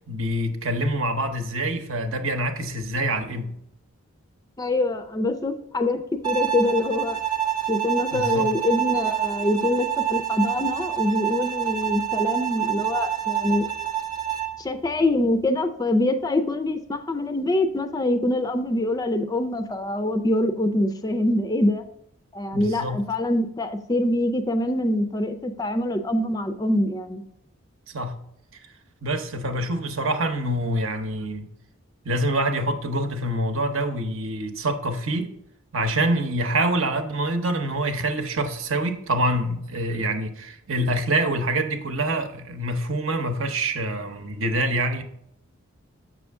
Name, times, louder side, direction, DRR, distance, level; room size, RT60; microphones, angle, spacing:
voice 1, 0.1-3.5 8.1-8.5 22.5-23.0 27.9-28.1 29.0-31.5 32.0-35.3 35.7-45.0, right 1 dB, 70° right, 0.9 m, -26 dB
voice 2, 4.6-6.0 6.2-7.2 7.7-13.7 14.6-21.8 22.3-27.2, left 1 dB, 15° left, 0.4 m, -24 dB
Bowed string instrument, 6.2-14.6, right 10 dB, 20° right, 0.6 m, -27 dB
7.4 x 6.2 x 3.5 m
head